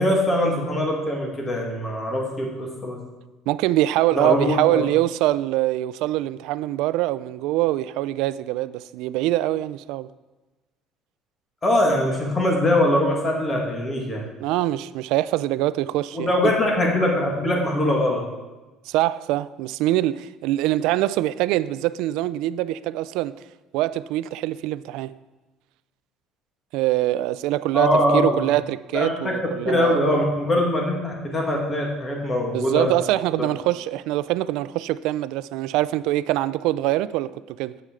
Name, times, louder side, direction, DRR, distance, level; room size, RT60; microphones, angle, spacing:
voice 1, 0.0-3.0 4.1-4.8 11.6-14.2 16.1-18.2 27.7-28.4 28.9-29.3 29.6-32.9 33.4-33.5, left 1 dB, 20° left, 1.7 m, -22 dB
voice 2, 3.5-10.1 14.4-16.5 18.9-23.3 23.7-25.1 26.7-30.3 32.5-37.8, right 15 dB, 70° right, 0.3 m, -24 dB
9.7 x 7.8 x 3.7 m
cardioid pair, 170°, 0 cm